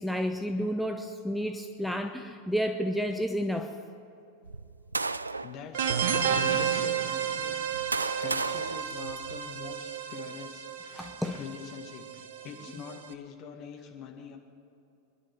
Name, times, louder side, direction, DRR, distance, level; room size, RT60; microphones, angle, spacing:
voice 1, 0.0-3.8 10.9-11.4, equal, ahead, 4 dB, 0.8 m, -31 dB
sound 1, 4.4-5.6 6.4-6.5 7.4-9.7, right 3 dB, 80° right, 0.3 m, -34 dB
voice 2, 5.4-7.7 8.2-14.4, left 7 dB, 40° left, 3 dB, 2.1 m, -44 dB
sound 2, 5.7-13.1, right 8 dB, 55° right, 0.9 m, -32 dB
24.5 x 11.0 x 4.9 m, 2.7 s
figure-of-eight pair, 90°, 0 cm